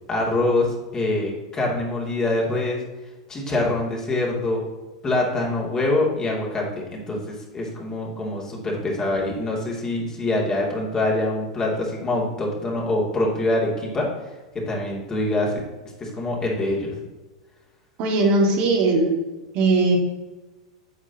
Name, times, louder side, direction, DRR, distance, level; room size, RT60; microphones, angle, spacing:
voice 1, 0.1-2.8 3.3-4.6 5.0-14.1 14.7-15.6 16.0-16.9, left 2 dB, 25° left, -3 dB, 2.7 m, -24 dB
voice 2, 18.0-19.2 19.5-20.0, right 2 dB, 50° right, -1 dB, 2.1 m, -19 dB
9.5 x 7.3 x 2.9 m, 1.2 s
hypercardioid pair, 95°, 3 cm